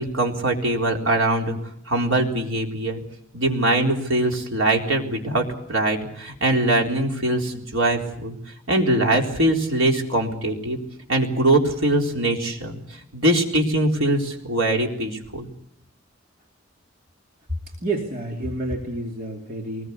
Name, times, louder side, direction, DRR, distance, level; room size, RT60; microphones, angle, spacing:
voice 1, 0.0-1.6 1.9-3.0 3.3-8.4 8.7-10.8 11.1-15.5, right 1 dB, 85° right, 1 dB, 4.0 m, -22 dB
voice 2, 17.8-19.9, right 2 dB, 45° right, 0 dB, 2.7 m, -29 dB
23.5 x 20.5 x 8.3 m, 0.75 s
head